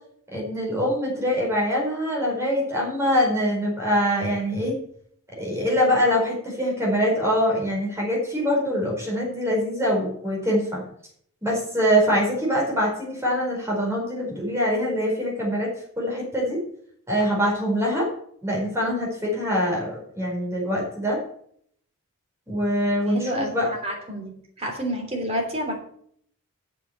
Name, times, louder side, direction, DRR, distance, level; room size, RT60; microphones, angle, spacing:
voice 1, 0.3-4.8 5.4-10.8 11.4-16.6 17.1-18.1 18.4-21.2 22.5-23.7, equal, 10° right, -2 dB, 4.7 m, -24 dB
voice 2, 23.1-23.5 23.8-24.3 24.6-25.7, equal, 30° right, 2 dB, 3.3 m, -28 dB
8.2 x 7.0 x 8.0 m, 0.64 s
head